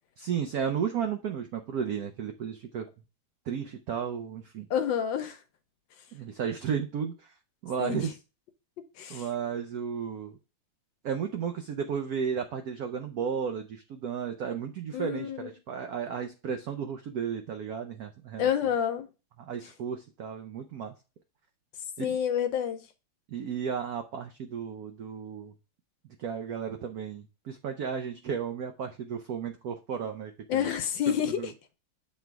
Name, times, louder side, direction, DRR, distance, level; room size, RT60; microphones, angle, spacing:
voice 1, 0.2-2.9 3.5-4.7 6.1-7.3 7.6-8.2 9.1-10.4 11.0-18.5 19.4-20.9 22.0-22.2 23.3-25.5 26.2-30.7 31.4-31.5, right 7 dB, 80° right, 0.8 m, -33 dB
voice 2, 4.7-5.4 7.8-8.0 9.0-9.2 14.9-15.5 18.4-19.1 22.0-22.9 30.5-31.5, left 9 dB, 70° left, 1.2 m, -28 dB
7.4 x 3.4 x 4.5 m
omnidirectional pair, 2.3 m